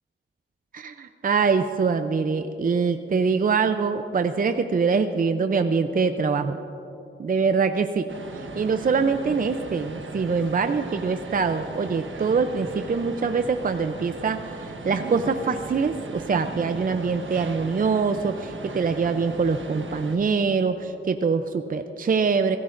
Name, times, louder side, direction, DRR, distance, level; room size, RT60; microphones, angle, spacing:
voice 1, 0.7-6.6 7.2-8.0 8.6-22.6, right 5 dB, 45° right, 8 dB, 0.5 m, -24 dB
sound 1, 8.1-20.2, right 3 dB, 70° right, 1.3 m, -37 dB
25.0 x 15.5 x 2.6 m, 2.9 s
wide cardioid pair, 95°, 21 cm